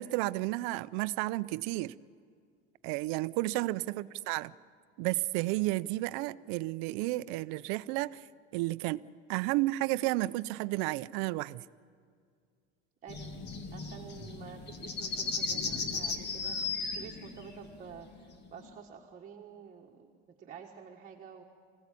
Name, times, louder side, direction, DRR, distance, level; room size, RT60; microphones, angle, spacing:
voice 1, 0.0-1.9 2.8-4.5 5.0-8.2 8.5-9.0 9.3-11.6, right 19 dB, 75° right, 15 dB, 0.6 m, -32 dB
voice 2, 13.0-13.3 13.7-20.1 20.4-21.4, right 7 dB, 25° right, -1 dB, 1.5 m, -49 dB
sound 1, 13.1-18.6, left 4 dB, 35° left, 1.7 m, -36 dB
25.0 x 16.5 x 8.4 m, 2.1 s
cardioid pair, 160°, 30 cm